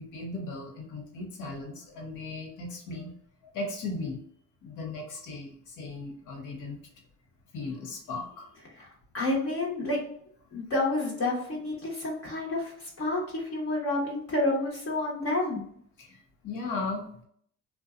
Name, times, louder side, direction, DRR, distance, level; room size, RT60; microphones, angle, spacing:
voice 1, 0.0-3.1 3.5-4.2 4.6-6.8 7.5-8.5 16.0-17.2, left 3 dB, 85° left, 1 dB, 0.9 m, -37 dB
voice 2, 8.8-10.0 10.5-15.6, left 2 dB, 50° left, -4 dB, 1.1 m, -29 dB
2.6 x 2.2 x 2.4 m, 0.64 s
cardioid pair, 90°, 30 cm